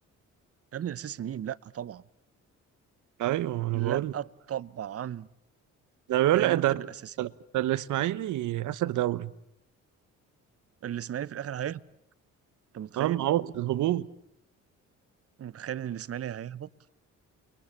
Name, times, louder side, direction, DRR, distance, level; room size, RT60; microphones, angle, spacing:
voice 1, 0.7-2.0 3.7-5.3 6.3-7.1 10.8-11.8 12.7-13.2 15.4-16.7, right 10 dB, 50° right, 0.9 m, -35 dB
voice 2, 3.2-4.1 6.1-6.9 7.2-9.3 13.0-14.1, right 14 dB, 75° right, 1.1 m, -27 dB
29.5 x 23.0 x 7.3 m
cardioid pair, 90°, 30 cm